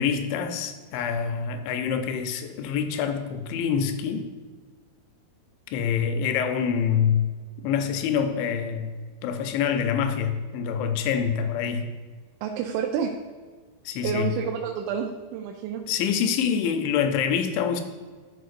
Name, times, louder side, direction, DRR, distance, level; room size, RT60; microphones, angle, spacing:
voice 1, 0.0-4.3 5.7-7.3 7.6-8.9 9.2-11.9 13.9-14.3 15.9-17.8, left 7 dB, 85° left, 2.9 m, -26 dB
voice 2, 12.4-13.1 14.0-15.8, right 7 dB, 90° right, 2.9 m, -29 dB
13.0 x 4.5 x 2.5 m
omnidirectional pair, 5.1 m